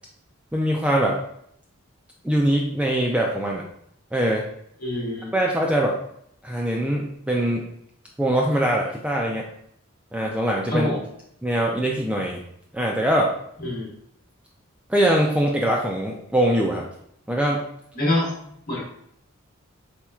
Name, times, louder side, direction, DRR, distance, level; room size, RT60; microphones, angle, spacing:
voice 1, 0.5-1.2 2.2-3.6 4.1-4.4 5.3-5.9 6.4-7.6 8.2-9.5 10.1-10.9 11.4-12.4 12.7-13.3 14.9-16.8 17.3-17.6, right 1 dB, 5° right, -2 dB, 0.3 m, -22 dB
voice 2, 4.8-5.3 10.7-11.0 13.6-13.9 17.9-18.3 18.7-18.8, left 1 dB, 45° left, -4 dB, 1.4 m, -25 dB
4.4 x 4.0 x 2.3 m, 0.71 s
head